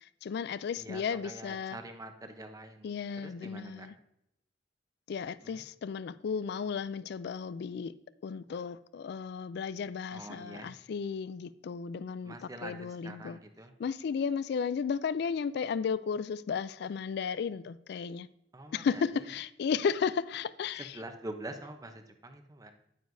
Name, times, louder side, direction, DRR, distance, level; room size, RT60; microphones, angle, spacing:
voice 1, 0.2-1.8 2.8-3.9 5.1-7.9 8.2-12.3 12.6-13.4 13.8-18.3 18.7-21.0, left 6 dB, 65° left, 0.3 m, -34 dB
voice 2, 0.7-2.9 3.2-3.9 5.4-5.6 10.1-10.7 12.2-13.7 18.5-19.0 20.7-22.7, right 1 dB, 20° right, 0.8 m, -45 dB
9.4 x 9.4 x 2.6 m
head